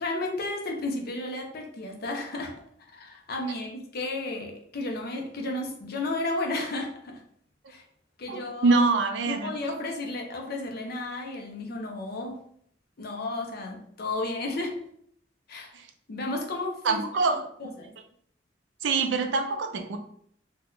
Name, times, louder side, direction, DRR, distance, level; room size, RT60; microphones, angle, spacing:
voice 1, 0.0-2.5 2.9-7.2 7.7-7.8 8.2-8.8 9.2-12.4 13.0-14.8 15.5-15.7 16.1-17.9, left 2 dB, 55° left, 0.6 m, -33 dB
voice 2, 8.3-9.5 15.7-15.9 16.8-17.4 18.8-20.0, right 3 dB, 75° right, 0.4 m, -24 dB
2.8 x 2.2 x 3.7 m
head